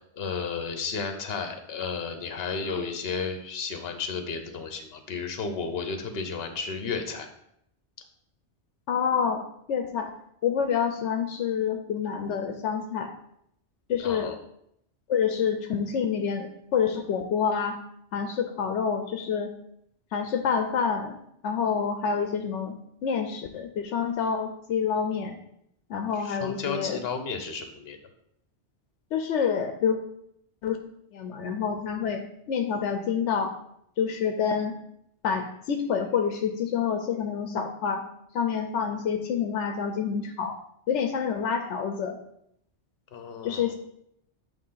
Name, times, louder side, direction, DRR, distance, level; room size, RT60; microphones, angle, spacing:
voice 1, 0.0-7.3 14.0-14.4 26.1-28.0 43.1-43.7, left 5 dB, 60° left, 6 dB, 1.1 m, -33 dB
voice 2, 8.9-9.4 9.7-10.1 10.4-13.1 13.9-14.4 15.1-17.8 18.1-19.5 20.1-21.2 21.4-22.8 23.0-25.4 25.9-27.0 29.1-30.0 30.6-30.8 31.1-33.5 34.0-34.8 35.2-38.0 38.3-40.6 40.9-42.2 43.4-43.8, left 7 dB, 85° left, 6 dB, 1.0 m, -27 dB
9.0 x 3.1 x 5.6 m, 0.74 s
omnidirectional pair, 1.2 m